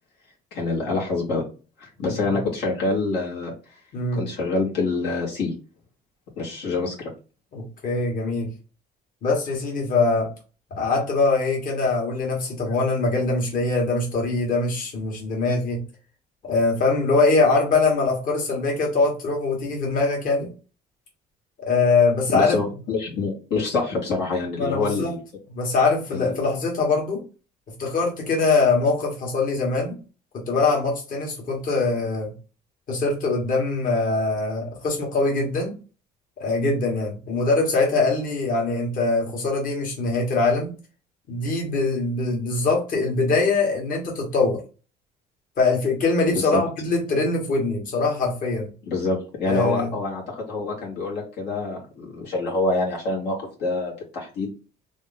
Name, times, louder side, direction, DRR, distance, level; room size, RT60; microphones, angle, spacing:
voice 1, 0.5-1.4 1.8-3.5 4.1-5.5 6.4-7.1 22.3-25.2 26.1-26.5 46.3-46.6 48.9-54.5, left 3 dB, 80° left, -3 dB, 1.6 m, -26 dB
voice 2, 2.0-2.4 3.9-4.2 7.5-8.5 9.2-10.3 10.7-15.8 16.4-20.5 21.6-22.6 24.6-25.1 25.5-27.2 27.8-30.0 30.5-32.3 32.9-35.8 36.4-40.7 41.3-44.6 45.6-48.7 49.5-49.9, left 3 dB, 55° left, -1 dB, 1.5 m, -22 dB
3.0 x 2.6 x 3.9 m, 0.34 s
cardioid pair, 110°, 17 cm